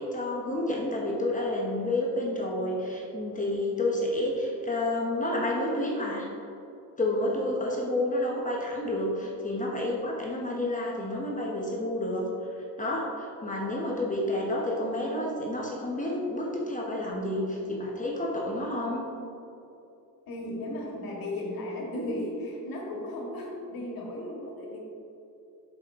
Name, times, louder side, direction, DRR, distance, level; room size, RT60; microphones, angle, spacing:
voice 1, 0.0-6.3 7.0-19.0, left 1 dB, 20° left, -3 dB, 1.1 m, -30 dB
voice 2, 20.3-24.8, left 1 dB, 85° left, -1 dB, 1.9 m, -35 dB
8.4 x 6.5 x 3.7 m, 2.8 s
cardioid pair, 135°, 34 cm